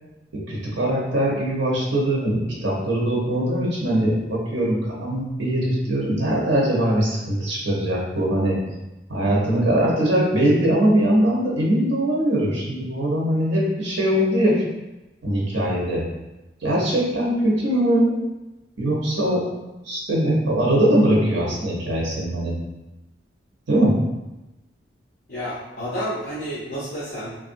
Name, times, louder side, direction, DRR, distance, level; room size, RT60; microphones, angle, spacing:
voice 1, 0.5-8.6 9.1-14.6 15.2-16.0 16.6-18.2 18.8-19.5 19.8-22.6 23.7-24.0, right 1 dB, 80° right, -5 dB, 0.9 m, -21 dB
voice 2, 25.3-27.3, equal, 50° left, -9 dB, 0.8 m, -30 dB
3.2 x 2.5 x 2.6 m, 1.0 s
head